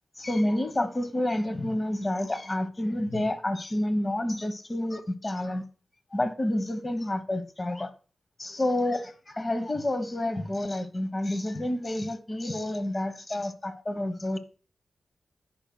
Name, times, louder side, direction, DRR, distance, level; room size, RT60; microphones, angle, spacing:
voice 1, 0.1-5.6 6.1-7.9 8.4-14.4, left 1 dB, 35° left, 1.2 m, -29 dB
17.0 x 5.8 x 2.3 m
cardioid pair, 55°, 0 cm